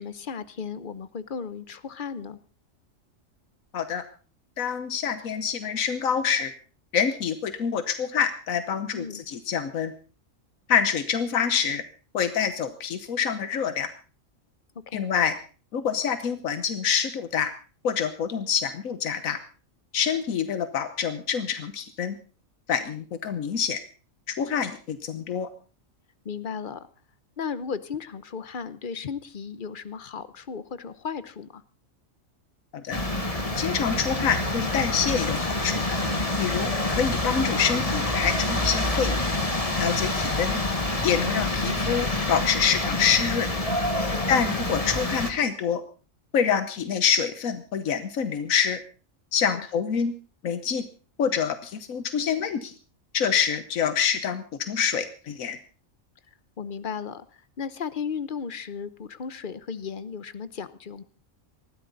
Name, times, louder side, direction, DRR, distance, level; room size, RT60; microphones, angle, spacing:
voice 1, 0.0-2.4 8.9-9.2 14.9-15.1 26.2-26.9 27.4-31.6 36.5-36.7 44.1-44.5 49.5-49.7 56.6-61.0, left 6 dB, 45° left, 15 dB, 0.9 m, -35 dB
voice 2, 4.6-6.5 6.9-9.9 10.7-11.8 12.1-13.9 14.9-15.3 15.7-17.5 17.8-19.4 19.9-22.2 22.7-23.8 24.3-25.5 32.7-33.0 33.6-35.8 36.4-39.2 39.8-40.6 41.0-43.5 44.3-45.8 46.3-48.8 49.3-50.1 50.4-50.8 51.2-52.7 53.1-55.6, left 7 dB, 90° left, 11 dB, 1.4 m, -26 dB
sound 1, 32.9-45.3, left 2 dB, 25° left, 1.8 m, -27 dB
19.5 x 14.5 x 4.0 m, 0.36 s
omnidirectional pair, 1.4 m